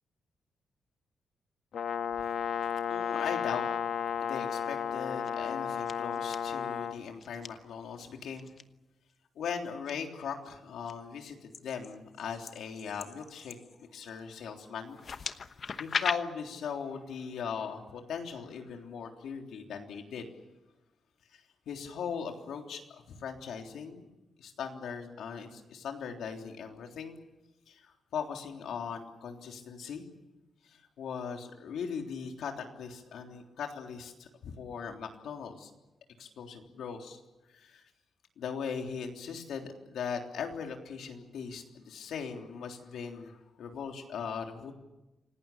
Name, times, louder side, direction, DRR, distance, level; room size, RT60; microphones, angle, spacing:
Brass instrument, 1.7-7.0, left 7 dB, 65° left, 1.6 m, -33 dB
voice 1, 2.9-3.7 4.2-8.5 9.4-15.0 15.8-20.3 21.3-24.1 24.4-27.2 27.7-30.1 30.6-35.7 36.2-37.2 37.5-37.8 38.4-44.7, left 6 dB, 85° left, 3 dB, 3.5 m, -39 dB
sound 1, 5.0-5.5 5.9-6.4 7.2-7.5 8.4-8.6 9.4-9.9 10.4-10.9 11.5-14.2 14.9-16.1, left 5 dB, 40° left, 1.0 m, -38 dB
27.5 x 18.0 x 8.7 m, 1.0 s
wide cardioid pair, 155°, 0 cm